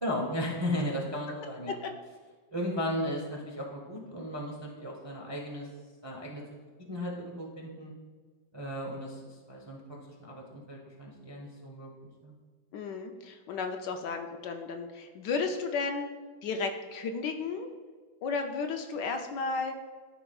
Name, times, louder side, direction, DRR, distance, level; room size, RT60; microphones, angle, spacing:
voice 1, 0.0-1.7 2.5-5.7 6.0-6.4 6.9-7.9 8.5-9.8 10.2-12.3, left 1 dB, 30° right, -2 dB, 0.5 m, -35 dB
voice 2, 12.7-16.1 16.4-17.7 18.2-19.8, left 4 dB, 70° left, 5 dB, 1.1 m, -33 dB
13.0 x 5.1 x 2.3 m, 1.5 s
omnidirectional pair, 2.1 m